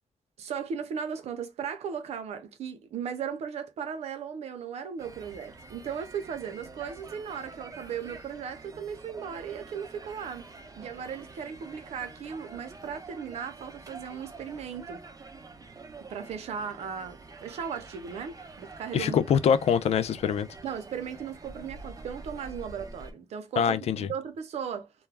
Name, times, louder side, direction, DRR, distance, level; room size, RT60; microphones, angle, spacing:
voice 1, 0.4-10.5 10.8-15.0 16.1-19.2 20.6-24.9, right 7 dB, 90° right, 0.5 m, -37 dB
sound 1, 5.0-23.1, right 3 dB, 35° right, 0.6 m, -47 dB
voice 2, 18.9-20.5 23.6-24.1, left 7 dB, 80° left, 0.4 m, -24 dB
2.2 x 2.0 x 3.2 m
cardioid pair, 60°, 11 cm